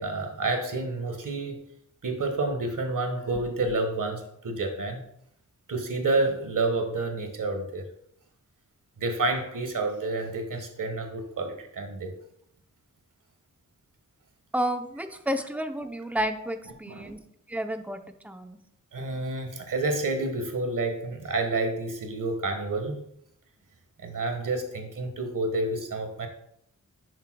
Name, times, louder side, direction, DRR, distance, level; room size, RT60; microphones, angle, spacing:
voice 1, 0.0-1.6 2.0-5.0 5.7-7.9 9.0-12.1 16.9-17.1 18.9-23.0 24.0-26.3, right 2 dB, 85° right, 5 dB, 1.5 m, -29 dB
voice 2, 14.5-17.2 17.5-18.6, equal, 5° right, 7 dB, 0.7 m, -31 dB
10.5 x 6.9 x 2.3 m, 0.71 s
wide cardioid pair, 100°, 31 cm